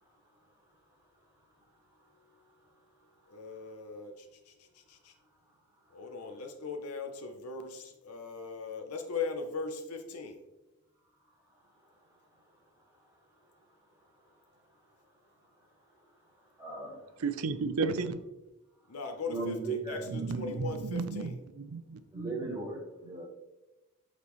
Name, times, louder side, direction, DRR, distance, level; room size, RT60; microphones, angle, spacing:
voice 1, 3.3-5.1 5.9-10.4 18.9-21.3, left 4 dB, 80° left, 0.7 m, -39 dB
voice 2, 16.6-17.1 19.3-20.6 22.1-23.2, right 3 dB, 15° right, 2.1 m, -38 dB
voice 3, 17.2-18.2 20.1-22.6, right 4 dB, 75° right, 0.5 m, -34 dB
8.4 x 4.1 x 3.1 m
head